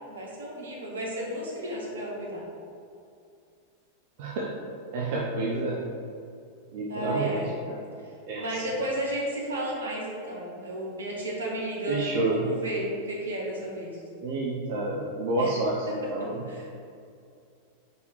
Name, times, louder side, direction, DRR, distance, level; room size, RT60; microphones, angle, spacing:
voice 1, 0.1-2.4 6.9-7.5 8.0-14.0 15.4-15.5 15.9-16.0 16.2-16.8, right 1 dB, 70° right, -3 dB, 1.6 m, -33 dB
voice 2, 4.2-4.5 4.9-5.8 6.7-7.4 7.7-7.8 8.3-8.6 11.9-12.5 14.2-16.4, right 2 dB, 50° right, -5 dB, 0.9 m, -29 dB
5.4 x 4.8 x 4.8 m, 2.4 s
figure-of-eight pair, 90°, 0 cm